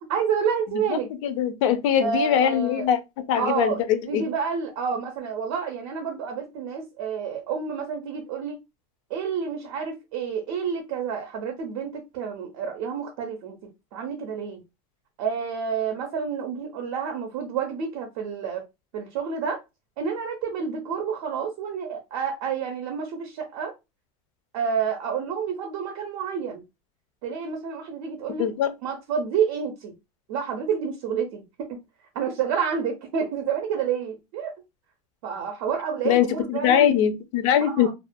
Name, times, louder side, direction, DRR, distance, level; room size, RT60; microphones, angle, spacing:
voice 1, 0.1-1.1 2.0-2.9 3.3-3.8 4.1-8.6 9.1-14.6 15.2-18.6 18.9-19.6 20.0-23.7 24.5-26.6 27.2-28.5 28.8-29.9 30.3-31.4 31.7-31.8 32.1-34.5 35.2-36.9 37.7-37.9, right 6 dB, 45° right, 0.6 m, -29 dB
voice 2, 1.2-3.0 3.3-4.2 28.4-28.7 36.0-37.9, left 9 dB, 55° left, 0.4 m, -22 dB
2.4 x 2.2 x 2.5 m
supercardioid pair, 175°, 20 cm